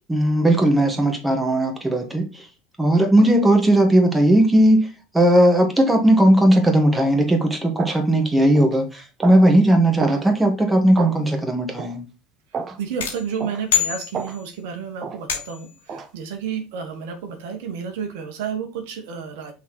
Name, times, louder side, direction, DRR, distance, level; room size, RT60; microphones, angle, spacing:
voice 1, 0.1-2.5 2.8-4.9 5.1-12.0, right 1 dB, 10° right, 3 dB, 2.0 m, -17 dB
sound 1, 7.1-7.2 7.8-8.0 8.6-8.8 9.2-9.5 10.0-10.2 11.0-11.2 11.8-12.0 12.5-12.8 13.4-13.6 14.1-14.4 15.0-15.2 15.9-16.1, right 6 dB, 35° right, 1.0 m, -30 dB
voice 2, 12.8-19.5, right 7 dB, 65° right, 4 dB, 1.3 m, -31 dB
sound 2, 13.0-14.6 15.3-15.8, left 10 dB, 75° left, 1.7 m, -26 dB
5.8 x 4.2 x 4.5 m, 0.31 s
hypercardioid pair, 75°, 0 cm